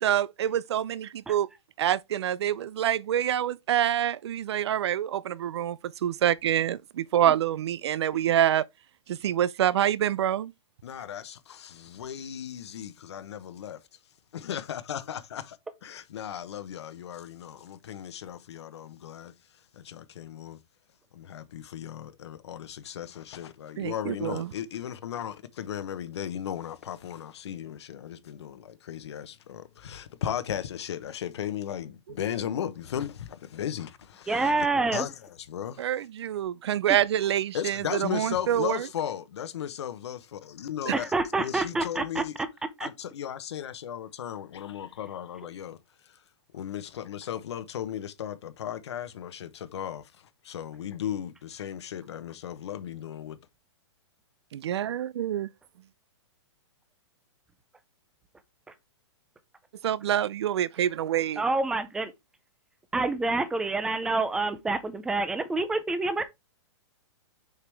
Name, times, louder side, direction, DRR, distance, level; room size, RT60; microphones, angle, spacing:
voice 1, 0.0-1.5 1.8-8.7 9.1-10.5 23.8-24.5 35.8-38.9 40.9-41.0 54.5-55.5 59.8-61.4, right 11 dB, 65° right, 0.5 m, -26 dB
voice 2, 10.8-13.8 14.3-15.6 15.8-20.6 21.1-34.5 34.9-35.1 35.5-35.9 37.5-41.1 41.4-42.3 42.8-45.8 46.0-46.2 46.5-53.4, left 9 dB, 70° left, 1.0 m, -36 dB
voice 3, 34.3-35.1 36.9-37.0 40.9-42.2 42.8-42.9 58.7-58.8 61.4-62.1 62.9-66.2, right 3 dB, 5° right, 0.4 m, -27 dB
6.6 x 4.8 x 3.4 m
hypercardioid pair, 165°, 15 cm